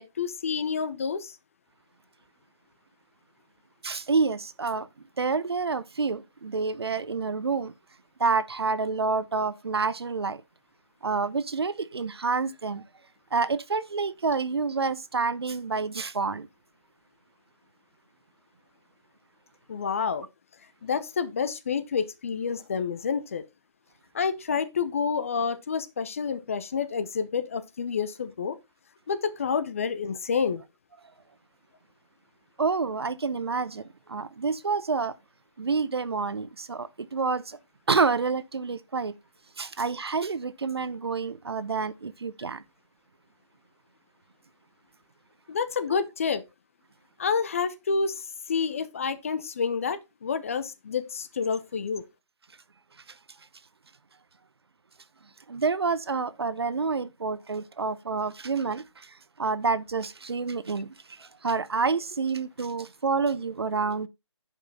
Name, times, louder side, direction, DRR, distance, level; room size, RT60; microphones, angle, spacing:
voice 1, 0.0-1.3 19.7-20.3 20.8-23.4 24.1-28.6 29.1-30.6 45.5-46.4 47.2-52.0, left 6 dB, 25° left, 0.7 m, -29 dB
voice 2, 3.8-4.9 5.2-7.7 8.2-10.4 11.0-12.8 13.3-16.5 32.6-33.8 34.1-35.1 35.6-37.6 37.9-39.1 39.6-42.6 55.5-64.1, right 4 dB, 55° right, 0.8 m, -28 dB
10.5 x 5.5 x 4.1 m
figure-of-eight pair, 155°, 16 cm